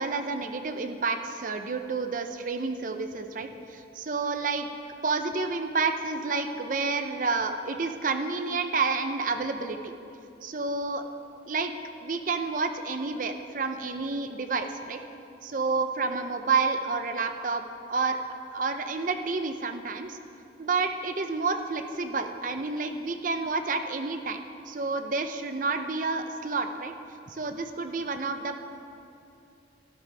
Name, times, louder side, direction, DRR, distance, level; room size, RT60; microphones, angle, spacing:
voice 1, 0.0-4.7 5.0-9.9 10.4-11.0 11.5-11.7 12.0-15.0 15.4-18.2 18.5-20.2 20.6-26.9 27.3-28.6, right 4 dB, 45° right, 7 dB, 0.6 m, -29 dB
12.0 x 12.0 x 3.4 m, 2.7 s
head